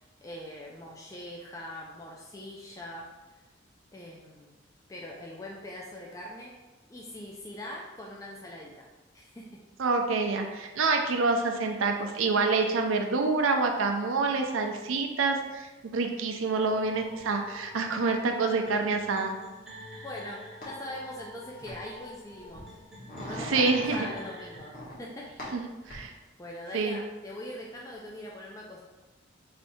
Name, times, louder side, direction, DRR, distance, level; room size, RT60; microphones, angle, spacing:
voice 1, 0.0-3.1 3.9-4.5 4.9-6.5 6.9-8.9 9.1-9.6 17.8-17.9 20.0-22.7 23.2-25.3 26.4-28.8, left 1 dB, 15° left, -3 dB, 0.3 m, -42 dB
voice 2, 9.8-19.3 23.5-24.0 25.5-26.1 26.7-27.0, right 4 dB, 80° right, 4 dB, 0.5 m, -27 dB
sound 1, 16.7-24.7, equal, ahead, 0.7 m, -48 dB
sound 2, 20.6-20.7 21.6-21.8 22.3-24.1 24.6-25.0 25.4-26.0, left 1 dB, 45° left, 1.2 m, -40 dB
3.3 x 2.7 x 4.2 m, 1.1 s
head